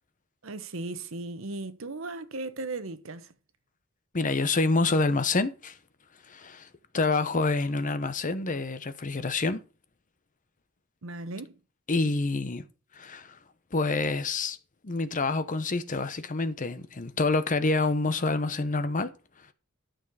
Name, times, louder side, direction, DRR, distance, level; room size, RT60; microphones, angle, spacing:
voice 1, 0.4-3.3 11.0-11.5, right 2 dB, 75° right, 1.0 m, -36 dB
voice 2, 4.1-5.8 6.3-6.7 6.9-9.6 11.9-12.6 12.9-13.4 13.7-14.6 14.8-19.1, left 3 dB, 40° left, 0.9 m, -27 dB
12.0 x 6.4 x 4.9 m
head